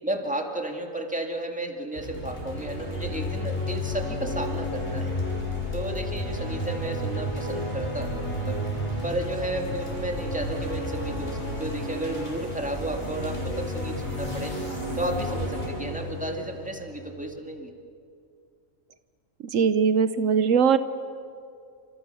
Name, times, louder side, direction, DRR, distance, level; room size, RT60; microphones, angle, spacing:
voice 1, 0.0-5.2 5.7-8.6 9.0-14.6 15.0-17.7, right 1 dB, 5° right, 3 dB, 2.3 m, -33 dB
sound 1, 1.9-17.4, left 1 dB, 45° left, 6.1 m, -32 dB
voice 2, 19.5-20.8, right 6 dB, 75° right, 12 dB, 1.2 m, -20 dB
29.5 x 27.0 x 6.9 m, 2.4 s
omnidirectional pair, 1.4 m